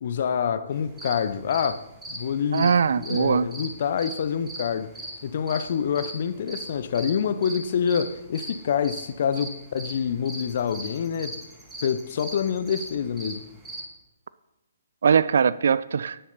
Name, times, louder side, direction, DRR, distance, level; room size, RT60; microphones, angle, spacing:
voice 1, 0.0-4.9 5.2-11.4 11.8-13.4, left 7 dB, 50° left, 0.6 m, -27 dB
sound 1, 0.7-13.8, right 1 dB, 5° right, 2.2 m, -39 dB
voice 2, 2.5-3.5 15.0-16.2, right 6 dB, 60° right, 0.3 m, -21 dB
10.5 x 10.0 x 4.1 m
figure-of-eight pair, 125°, 0 cm